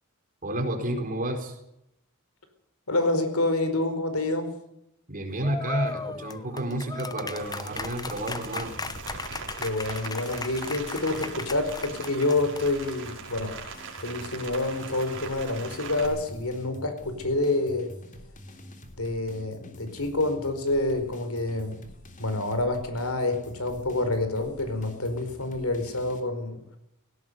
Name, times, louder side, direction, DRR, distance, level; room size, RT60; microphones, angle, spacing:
voice 1, 0.4-1.6 5.1-8.8, right 1 dB, 40° right, 5 dB, 4.4 m, -30 dB
voice 2, 2.9-4.5 9.6-13.5 14.0-17.9 19.0-21.8 22.2-26.6, left 2 dB, 70° left, 9 dB, 4.7 m, -27 dB
sound 1, 5.4-12.9, left 3 dB, 20° left, 0.9 m, -36 dB
Rain, 7.4-16.1, right 4 dB, 60° right, 5.2 m, -41 dB
sound 2, 7.7-26.2, left 1 dB, 35° left, 3.4 m, -48 dB
18.0 x 17.5 x 8.2 m, 0.79 s
head